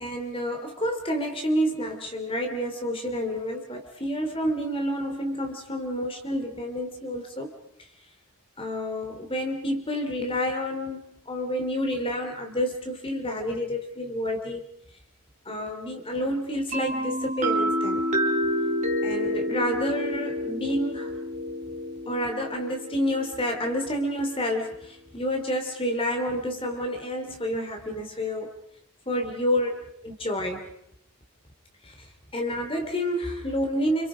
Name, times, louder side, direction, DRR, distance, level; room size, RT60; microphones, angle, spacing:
voice 1, 0.0-7.5 8.6-11.0 11.3-14.7 15.4-18.0 19.0-21.1 22.1-28.5 29.1-30.7 31.8-31.9 32.3-34.1, equal, 25° left, 4 dB, 3.2 m, -29 dB
sound 1, 16.7-24.4, equal, 35° right, 3.3 m, -29 dB
30.0 x 28.0 x 5.1 m, 0.73 s
head